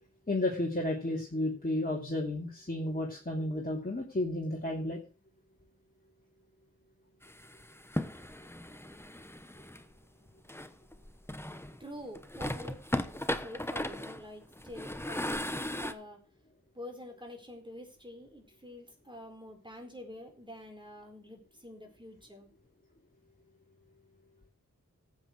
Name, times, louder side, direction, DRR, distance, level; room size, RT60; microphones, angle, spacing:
voice 1, 0.3-5.0, left 1 dB, 30° left, -2 dB, 3.0 m, -32 dB
sound 1, 7.2-9.8 10.5-11.8 12.1-15.9, left 1 dB, 10° left, 1.1 m, -37 dB
voice 2, 11.8-16.2 16.7-22.5, equal, 15° right, 2 dB, 4.3 m, -47 dB
14.0 x 8.3 x 6.3 m, 0.36 s
wide cardioid pair, 50°, 30 cm